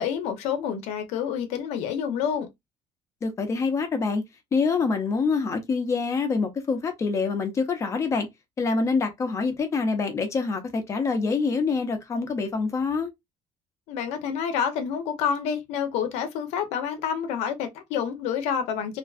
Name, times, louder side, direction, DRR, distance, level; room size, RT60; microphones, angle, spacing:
voice 1, 0.0-2.5 13.9-19.0, left 7 dB, 80° left, 0.6 m, -28 dB
voice 2, 3.2-4.2 4.5-8.3 8.6-13.1, left 4 dB, 25° left, 0.5 m, -26 dB
2.5 x 2.3 x 2.3 m
cardioid pair, 160°, 11 cm